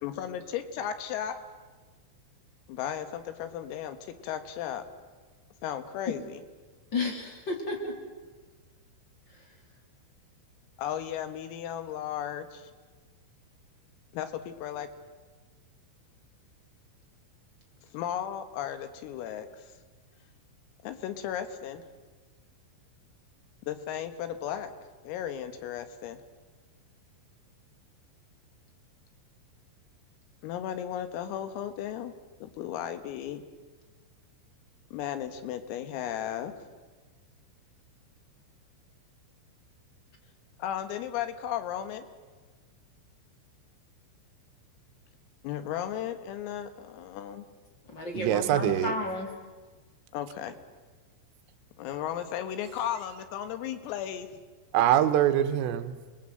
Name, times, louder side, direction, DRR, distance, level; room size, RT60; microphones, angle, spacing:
voice 1, 0.0-1.4 2.7-4.8 5.6-6.4 10.8-12.7 14.1-14.9 17.9-19.7 20.8-21.8 23.7-24.7 25.0-26.2 30.4-32.1 32.4-33.4 34.9-36.5 40.6-42.1 45.4-47.5 50.1-50.6 51.8-54.3, left 10 dB, 90° left, 10 dB, 4.2 m, -35 dB
voice 2, 6.9-8.0 47.9-49.3, left 2 dB, 25° left, 2 dB, 3.3 m, -32 dB
voice 3, 48.1-48.9 54.7-55.9, right 11 dB, 80° right, 10 dB, 3.7 m, -24 dB
29.5 x 21.0 x 7.8 m, 1.3 s
omnidirectional pair, 5.8 m